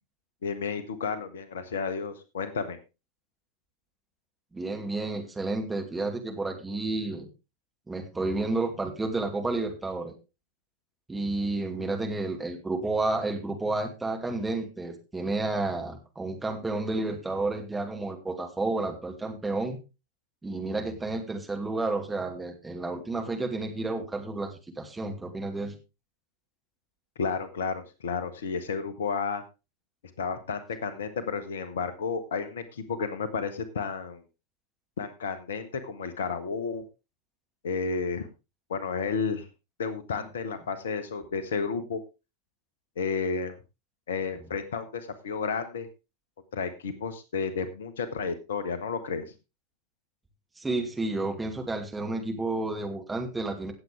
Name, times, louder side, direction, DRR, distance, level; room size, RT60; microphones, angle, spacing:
voice 1, 0.4-2.8 27.2-29.4 30.2-34.2 35.0-36.8 37.6-38.3 38.7-39.5 39.8-42.0 43.0-43.6 44.1-45.9 46.5-49.3, left 5 dB, 65° left, 12 dB, 1.3 m, -32 dB
voice 2, 4.5-7.3 7.9-10.1 11.1-19.8 20.4-25.7 50.6-53.7, right 2 dB, 10° right, 3 dB, 2.5 m, -31 dB
17.0 x 7.8 x 3.5 m, 0.28 s
figure-of-eight pair, 90°, 0 cm